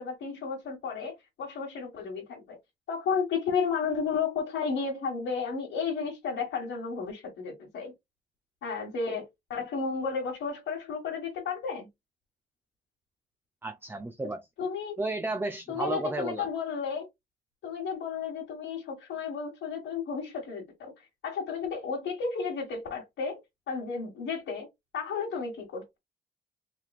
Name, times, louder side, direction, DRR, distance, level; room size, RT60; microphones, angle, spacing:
voice 1, 0.0-2.6 2.9-7.9 8.6-11.9 14.6-15.0 15.7-17.1 17.6-24.7 24.9-26.0, left 5 dB, 75° left, 1.5 m, -33 dB
voice 2, 13.6-14.5 15.0-16.5, right 2 dB, 10° right, 0.5 m, -33 dB
3.7 x 3.1 x 2.3 m
cardioid pair, 90°, 20 cm